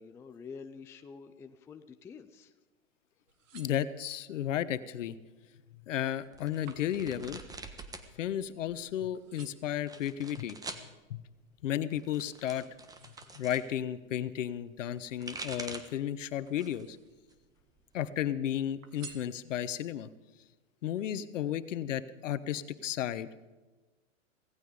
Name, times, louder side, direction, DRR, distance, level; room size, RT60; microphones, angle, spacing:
voice 1, 0.0-2.5, left 5 dB, 5° left, 8 dB, 0.4 m, -48 dB
pulling out a sword or knife and putting it back, 3.1-4.4 5.0-5.4 5.7-8.8 9.1-9.8 10.5-11.9 12.4-13.9 14.8-15.9 16.5-17.3 17.6-18.3 18.8-19.9 20.4-20.5, right 7 dB, 70° right, 2.3 m, -56 dB
voice 2, 3.5-5.2 5.9-7.4 8.2-10.6 11.1-11.2 11.6-12.7 13.3-17.0 17.9-20.1 20.8-23.3, left 11 dB, 65° left, 14 dB, 1.2 m, -33 dB
sound 1, 6.3-8.1 8.4-9.1 9.7-10.9 11.9-13.7 14.9-16.0 16.5-16.9 17.3-18.3, right 3 dB, 10° right, 1.4 m, -45 dB
17.5 x 15.5 x 5.1 m, 1.2 s
hypercardioid pair, 125°, 40 cm